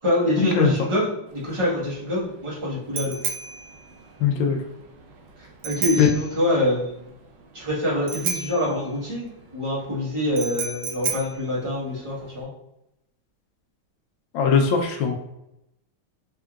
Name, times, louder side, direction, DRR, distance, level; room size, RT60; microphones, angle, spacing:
voice 1, 0.0-3.1 5.4-7.1 7.5-12.5, left 1 dB, 25° right, -6 dB, 0.7 m, -25 dB
Bicycle bell, 1.3-12.4, right 5 dB, 75° right, 0.9 m, -34 dB
voice 2, 4.2-4.6 6.0-6.1 14.3-15.1, left 6 dB, 75° left, 3 dB, 1.4 m, -19 dB
3.8 x 3.6 x 2.3 m, 0.84 s
omnidirectional pair, 2.4 m